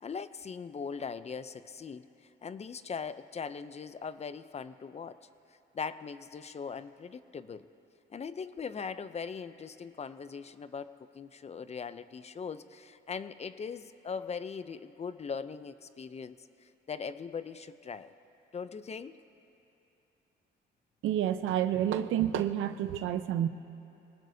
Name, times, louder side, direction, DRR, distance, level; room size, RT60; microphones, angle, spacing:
voice 1, 0.0-2.1 2.4-5.2 5.7-7.7 8.1-18.1 18.5-19.2, left 5 dB, 35° left, 13 dB, 0.5 m, -40 dB
voice 2, 21.0-23.5, right 11 dB, 85° right, 10 dB, 0.7 m, -29 dB
24.5 x 19.0 x 2.7 m, 2.8 s
cardioid pair, 90°, 20 cm